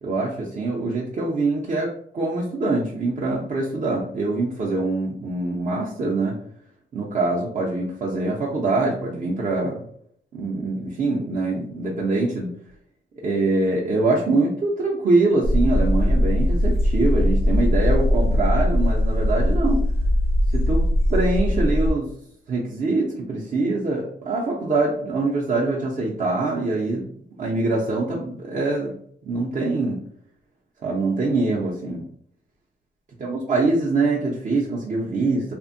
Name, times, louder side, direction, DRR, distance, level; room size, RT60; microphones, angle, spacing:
voice 1, 0.0-6.3 6.9-9.8 10.3-12.5 13.2-19.8 20.5-20.8 21.1-22.1 22.5-27.1 27.4-29.0 29.2-30.0 30.8-32.1 33.2-35.5, right 3 dB, 40° right, -3 dB, 0.5 m, -24 dB
sound 1, 15.4-21.9, left 1 dB, 90° right, 0.9 m, -20 dB
3.4 x 2.1 x 2.5 m, 0.66 s
cardioid pair, 125°, 20 cm